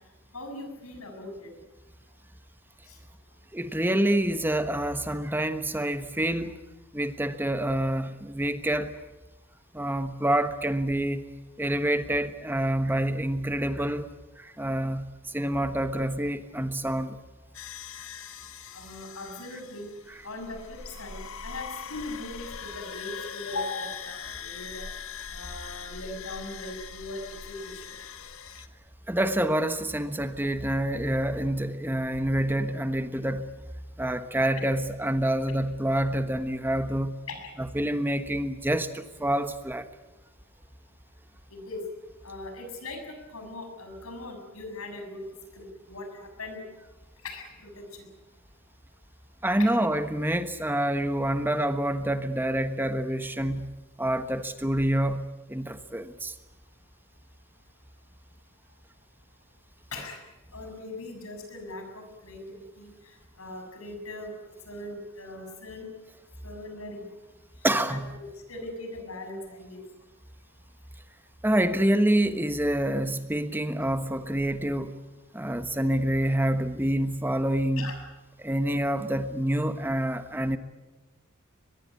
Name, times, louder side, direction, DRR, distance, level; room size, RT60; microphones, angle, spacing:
voice 1, 0.3-1.5 2.9-3.0 18.7-19.9 20.2-24.9 25.3-27.2 27.5-27.9 37.3-37.5 41.5-41.8 42.2-45.2 45.6-46.6 47.2-48.1 49.6-49.7 59.9-60.2 60.5-62.9 63.4-64.3 64.7-65.8 66.4-67.1 67.9-69.8 77.8-78.0, left 2 dB, 90° left, 7.1 m, -39 dB
voice 2, 3.5-6.6 6.9-9.0 9.7-11.3 11.6-14.1 14.4-17.2 29.1-33.5 34.0-37.2 37.6-39.9 49.4-56.3 67.6-68.1 71.4-75.0 75.3-77.9 78.4-80.6, right 1 dB, 10° right, 1.2 m, -27 dB
sound 1, 17.5-28.7, left 7 dB, 75° left, 1.8 m, -41 dB
23.5 x 21.5 x 9.6 m
head